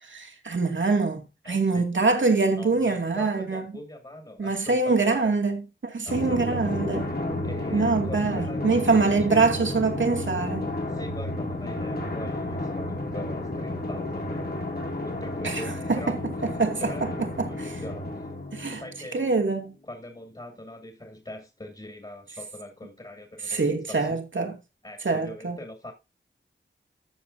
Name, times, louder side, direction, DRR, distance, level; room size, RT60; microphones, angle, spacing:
voice 1, 0.0-3.6 4.4-7.1 7.7-10.6 15.4-15.6 15.9-16.2 16.4-17.1 17.4-17.8 18.5-18.8 19.1-19.7 23.5-24.5 25.0-25.6, right 4 dB, 70° right, 2.3 m, -24 dB
voice 2, 1.4-1.8 2.6-5.2 6.0-6.6 7.4-8.8 9.0-9.7 10.9-16.2 16.8-18.3 18.7-19.3 19.9-23.6 23.9-24.1 24.8-25.9, left 1 dB, 25° left, 2.6 m, -42 dB
Drum, 6.1-19.2, left 1 dB, 50° left, 2.7 m, -32 dB
13.5 x 7.5 x 2.7 m
wide cardioid pair, 65°, 21 cm